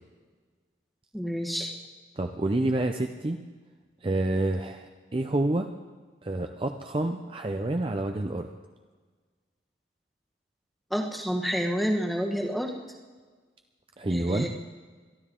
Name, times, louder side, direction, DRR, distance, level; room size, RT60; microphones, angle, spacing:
voice 1, 1.1-1.7 10.9-12.7 14.1-14.5, equal, ahead, 2 dB, 1.3 m, -29 dB
voice 2, 2.2-3.4 4.0-5.7 6.2-8.5 14.0-14.5, right 2 dB, 30° right, 5 dB, 0.5 m, -28 dB
22.5 x 13.0 x 3.7 m, 1.4 s
head